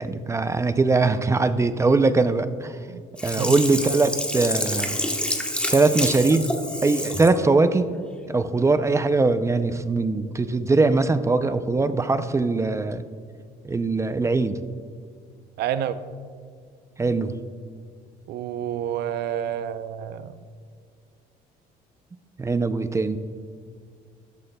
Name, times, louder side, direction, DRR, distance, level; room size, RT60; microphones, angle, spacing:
voice 1, 0.0-2.8 3.2-5.0 5.7-6.5 6.8-7.9 8.3-13.0 13.6-14.6 17.0-17.4 22.4-23.2, right 3 dB, 15° right, 0.4 m, -21 dB
Sink (filling or washing), 3.2-7.4 7.8-7.9, left 1 dB, 5° left, 1.1 m, -28 dB
voice 2, 3.4-3.7 15.6-16.1 18.3-20.4, right 10 dB, 75° right, 0.6 m, -29 dB
14.0 x 13.0 x 2.2 m
cardioid pair, 110°, 17 cm